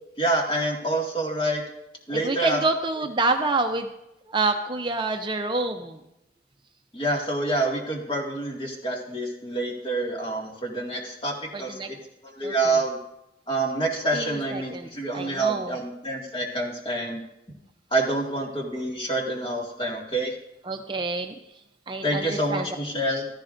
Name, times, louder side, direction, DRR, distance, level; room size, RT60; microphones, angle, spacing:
voice 1, 0.2-1.6 2.1-2.6 6.9-12.0 12.2-13.0 13.5-17.2 17.9-20.3 22.0-23.3, right 2 dB, 30° left, -1 dB, 2.0 m, -27 dB
voice 2, 2.1-3.9 4.3-6.0 11.5-11.9 12.4-12.7 14.1-14.9 15.1-15.8 20.7-21.4 21.9-22.7, right 3 dB, 25° right, 5 dB, 0.5 m, -27 dB
15.0 x 13.0 x 2.6 m, 0.87 s
head